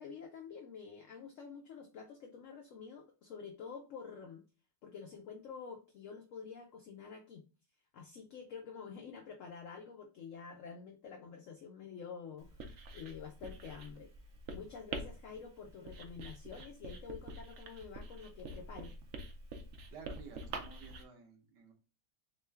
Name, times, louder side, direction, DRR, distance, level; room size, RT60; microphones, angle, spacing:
voice 1, 0.0-4.4 4.8-7.4 7.9-14.1 14.5-18.9, left 6 dB, 70° left, 3 dB, 0.7 m, -48 dB
Writing, 12.4-21.0, right 2 dB, 60° right, 0.9 m, -46 dB
voice 2, 19.9-21.7, right 6 dB, 75° right, 3 dB, 1.6 m, -53 dB
3.6 x 3.2 x 3.4 m, 0.33 s
omnidirectional pair, 1.9 m